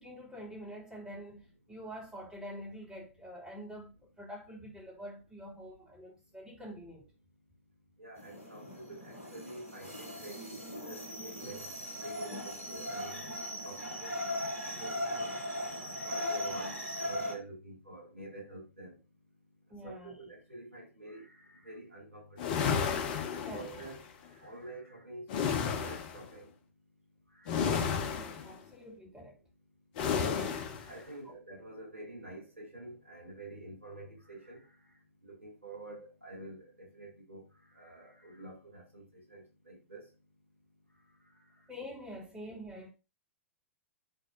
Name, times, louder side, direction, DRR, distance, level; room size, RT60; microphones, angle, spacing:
voice 1, 0.0-7.1 19.7-20.2 23.2-23.8 28.1-29.4 31.2-31.4 41.7-42.9, equal, 10° right, 3.1 m, -46 dB
voice 2, 8.0-11.7 12.0-13.2 13.6-14.4 14.8-15.4 16.0-19.0 19.8-22.9 23.5-24.0 24.3-25.2 25.6-26.5 27.3-27.9 30.6-34.7 35.2-40.0, right 2 dB, 80° right, 3.4 m, -48 dB
sound 1, 8.2-17.4, left 1 dB, 80° left, 2.2 m, -38 dB
sound 2, 22.4-24.0 25.3-26.2 27.5-28.5 30.0-30.9, left 6 dB, 40° left, 1.2 m, -32 dB
11.0 x 4.1 x 2.8 m
figure-of-eight pair, 105°, 7 cm